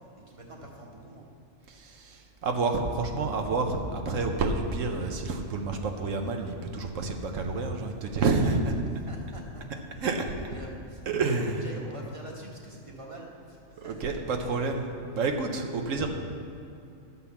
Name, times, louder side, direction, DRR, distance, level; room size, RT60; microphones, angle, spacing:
voice 1, 0.3-1.2 9.1-11.4 11.6-14.9, right 1 dB, 25° right, -2 dB, 1.6 m, -46 dB
voice 2, 1.7-8.7 10.0-10.3 11.1-11.6 13.8-16.1, right 3 dB, 80° right, 4 dB, 1.3 m, -29 dB
11.5 x 5.5 x 7.1 m, 2.7 s
omnidirectional pair, 1.3 m